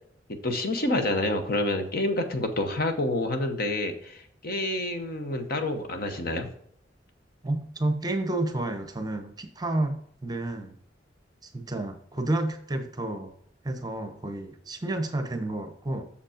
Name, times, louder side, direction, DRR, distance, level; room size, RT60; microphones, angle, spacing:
voice 1, 0.3-6.5, left 1 dB, 55° left, 6 dB, 1.0 m, -28 dB
voice 2, 7.4-10.0 10.2-10.8 11.4-13.3 13.6-16.0, right 2 dB, 20° right, 7 dB, 0.8 m, -30 dB
6.9 x 5.2 x 5.0 m, 0.65 s
head